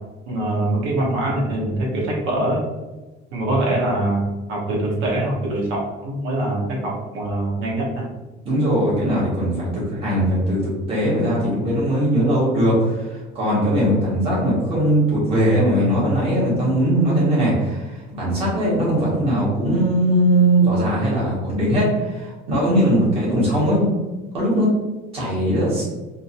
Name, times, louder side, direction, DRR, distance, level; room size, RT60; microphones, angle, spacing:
voice 1, 0.3-2.6 3.3-4.2 4.5-8.1, right 1 dB, 70° right, -3 dB, 1.2 m, -23 dB
voice 2, 8.4-10.6 10.9-23.9 24.3-24.7 25.1-25.8, right 1 dB, 30° right, -7 dB, 1.5 m, -20 dB
3.7 x 2.7 x 2.6 m, 1.2 s
cardioid pair, 170°, 20 cm